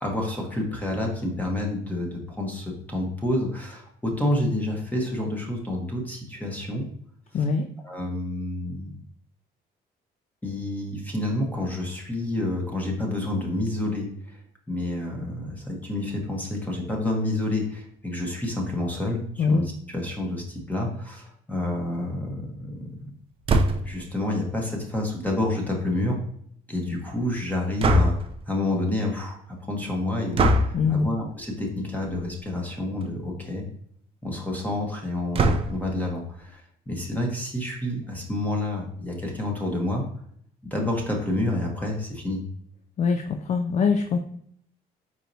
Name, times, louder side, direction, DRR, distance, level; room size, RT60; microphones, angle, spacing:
voice 1, 0.0-6.8 7.8-8.9 10.4-14.4 14.7-22.6 23.8-26.2 26.7-28.2 28.5-33.6 34.2-40.0 40.7-42.4, left 1 dB, 10° left, 0 dB, 1.1 m, -29 dB
voice 2, 7.3-7.7 19.4-19.6 30.7-31.1 43.0-44.2, left 5 dB, 45° left, 5 dB, 0.4 m, -23 dB
sound 1, 23.5-24.0 27.8-28.4 30.3-30.8 32.0-32.3 32.7-32.8 33.0-33.1 35.3-35.9, right 1 dB, 35° right, 0.5 m, -21 dB
4.6 x 4.2 x 2.7 m, 0.65 s
cardioid pair, 110°, 17 cm